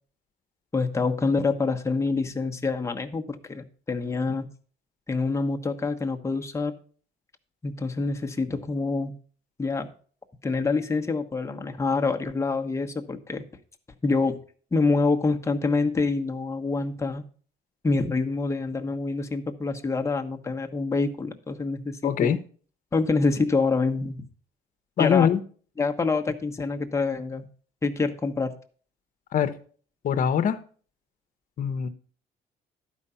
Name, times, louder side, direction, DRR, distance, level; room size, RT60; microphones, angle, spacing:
voice 1, 0.7-4.5 5.1-6.7 7.6-9.2 9.6-9.9 10.4-13.4 14.0-14.4 14.7-17.3 17.8-22.4 22.9-24.2 25.0-25.3 25.8-27.5 27.8-28.5, left 3 dB, 15° left, 4 dB, 1.1 m, -26 dB
voice 2, 22.0-22.4 25.0-25.4 29.3-29.5 30.0-30.6 31.6-31.9, left 8 dB, 50° left, 11 dB, 1.0 m, -22 dB
11.5 x 4.9 x 5.6 m, 0.43 s
cardioid pair, 110°, 17 cm